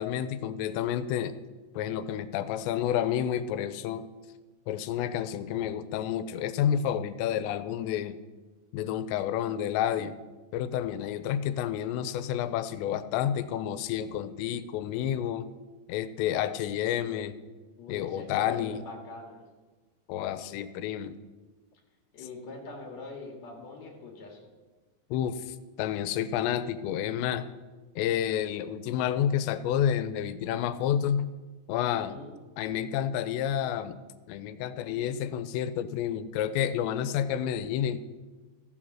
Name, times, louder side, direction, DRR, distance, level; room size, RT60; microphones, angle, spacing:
voice 1, 0.0-1.4 1.8-4.0 4.7-8.2 8.7-10.1 10.5-15.5 15.9-17.4 17.9-18.8 20.1-21.2 25.1-27.5 28.0-31.3 31.7-32.2 32.6-34.0 34.3-38.0, left 10 dB, 85° left, 13 dB, 2.8 m, -30 dB
voice 2, 17.8-19.4 22.1-24.4 31.9-32.3, left 3 dB, 50° left, 1 dB, 2.7 m, -43 dB
14.0 x 7.8 x 6.1 m, 1.3 s
omnidirectional pair, 5.1 m